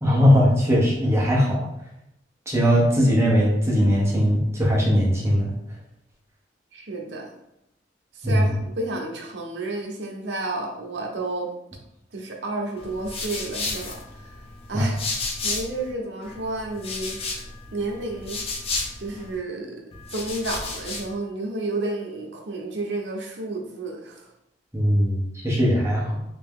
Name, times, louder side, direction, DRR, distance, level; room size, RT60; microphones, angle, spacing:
voice 1, 0.0-1.6 2.5-5.5 8.2-8.4 14.7-14.9 24.7-26.1, equal, 15° right, -4 dB, 0.8 m, -19 dB
voice 2, 6.7-7.3 8.1-11.5 12.1-14.3 14.7-15.0 15.4-17.2 17.7-18.4 19.0-19.8 20.1-24.3, right 2 dB, 80° right, 0 dB, 0.8 m, -31 dB
sound 1, 12.8-15.9 16.2-19.4 19.9-21.1, left 3 dB, 35° left, 0.5 m, -33 dB
3.4 x 2.7 x 3.6 m, 0.82 s
head